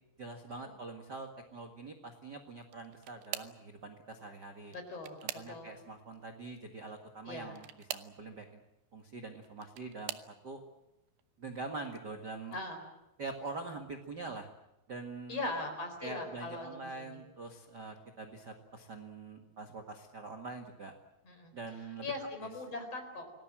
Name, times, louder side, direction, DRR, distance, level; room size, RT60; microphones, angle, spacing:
voice 1, 0.2-4.7 5.2-8.6 8.9-10.6 11.4-12.5 13.2-14.5 14.9-15.5 16.0-20.9 21.5-22.1, right 3 dB, 50° right, 4 dB, 1.2 m, -44 dB
sound 1, 2.6-3.7 4.6-5.9 7.5-8.2 9.3-10.3 11.1-11.4 11.9-12.0 13.3-13.4, right 13 dB, 75° right, 3.0 m, -44 dB
voice 2, 4.7-5.2 5.5-5.7 7.2-7.6 12.5-12.8 15.3-17.2 21.2-21.5 22.0-23.3, left 2 dB, 35° left, 6 dB, 5.1 m, -40 dB
28.0 x 19.5 x 7.6 m, 0.92 s
omnidirectional pair, 5.0 m